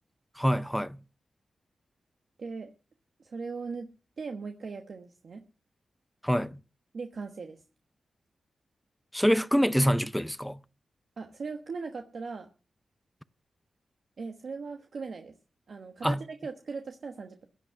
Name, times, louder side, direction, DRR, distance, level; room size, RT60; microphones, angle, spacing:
voice 1, 0.4-1.0 6.2-6.6 9.1-10.6 16.0-16.2, equal, ahead, 0.6 m, -25 dB
voice 2, 2.4-2.7 3.2-3.9 4.2-5.4 6.9-7.6 11.2-12.5 14.2-15.3 15.7-17.5, right 4 dB, 60° right, 1.2 m, -39 dB
16.0 x 10.5 x 5.7 m
cardioid pair, 75°, 0 cm